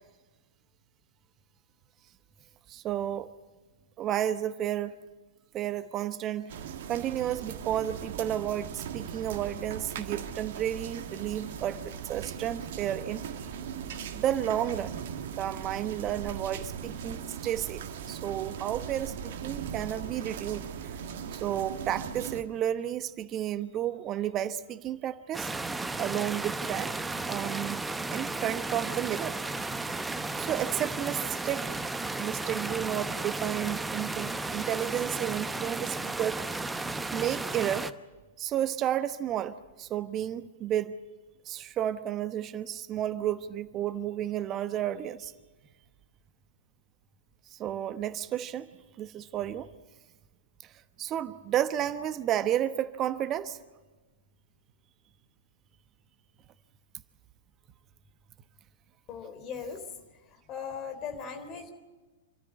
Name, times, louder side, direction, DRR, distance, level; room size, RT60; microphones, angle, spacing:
voice 1, 2.7-3.3 4.0-5.0 5.5-6.5 6.9-13.2 14.1-15.0 15.4-20.6 21.3-25.5 26.0-26.9 27.3-27.8 28.1-29.3 30.4-31.7 32.2-36.6 37.1-37.9 38.4-40.9 41.5-45.3 47.5-48.7 49.0-49.7 51.0-53.6, right 11 dB, 30° right, 13 dB, 1.1 m, -32 dB
sound 1, 6.5-22.4, right 8 dB, 55° right, 1.7 m, -39 dB
sound 2, 25.3-37.9, right 3 dB, 10° right, 0.8 m, -34 dB
voice 2, 59.1-59.9 60.1-61.7, left 6 dB, 30° left, 8 dB, 3.7 m, -39 dB
27.5 x 14.0 x 8.8 m, 1.2 s
figure-of-eight pair, 105°, 0 cm